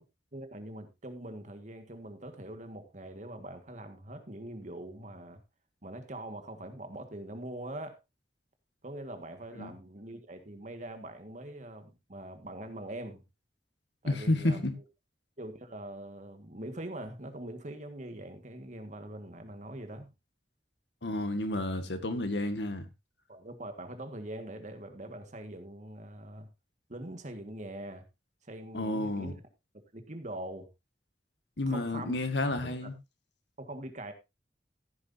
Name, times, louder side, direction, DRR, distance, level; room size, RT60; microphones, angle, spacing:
voice 1, 0.3-5.4 5.8-8.0 8.8-13.2 14.0-14.6 15.4-20.1 23.3-26.5 26.9-28.0 28.4-29.3 29.9-30.7 31.7-32.2 32.6-32.9 33.6-34.1, right 1 dB, 45° right, 1.7 m, -43 dB
voice 2, 14.0-14.7 21.0-22.9 28.7-29.4 31.6-32.9, left 1 dB, 85° left, 1.8 m, -31 dB
15.0 x 9.6 x 2.7 m
head